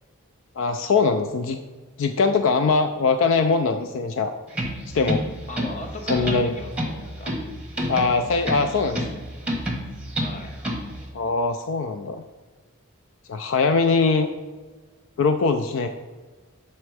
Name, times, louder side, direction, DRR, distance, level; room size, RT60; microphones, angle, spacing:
voice 1, 0.6-1.6 2.0-4.3 4.9-5.2 6.1-6.5 7.9-9.0 11.1-12.2 13.3-14.3 15.2-15.9, left 4 dB, 65° left, 7 dB, 0.3 m, -21 dB
sound 1, 4.5-11.0, equal, 5° right, 1.0 m, -29 dB
voice 2, 5.5-7.3 10.2-10.6, left 2 dB, 35° left, 4 dB, 0.7 m, -37 dB
6.8 x 4.3 x 4.7 m, 1.3 s
head